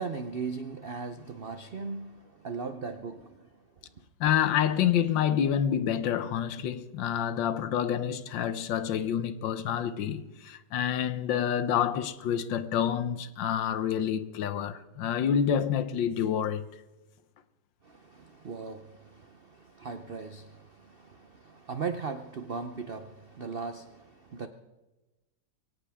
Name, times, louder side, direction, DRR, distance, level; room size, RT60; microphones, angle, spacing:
voice 1, 0.0-3.5 17.8-24.5, right 5 dB, 80° right, 0.5 m, -38 dB
voice 2, 4.2-16.6, left 9 dB, 75° left, 1.5 m, -28 dB
23.0 x 17.0 x 3.6 m
omnidirectional pair, 2.1 m